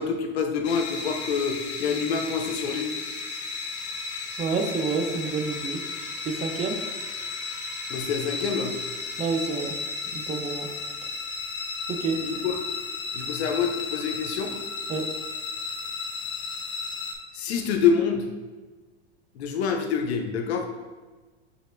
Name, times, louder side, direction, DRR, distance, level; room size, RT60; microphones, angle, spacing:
voice 1, 0.0-2.9 7.9-8.7 12.2-12.6 13.1-14.5 17.3-18.2 19.3-20.7, left 6 dB, 85° left, 4 dB, 0.7 m, -26 dB
sound 1, 0.6-17.2, left 4 dB, 35° left, 0.7 m, -34 dB
voice 2, 4.4-5.8 6.3-6.8 9.2-9.7 10.3-10.7 11.9-12.2 14.9-15.0, right 4 dB, 25° right, 4 dB, 0.4 m, -28 dB
6.6 x 2.9 x 2.5 m, 1.3 s
supercardioid pair, 125°, 32 cm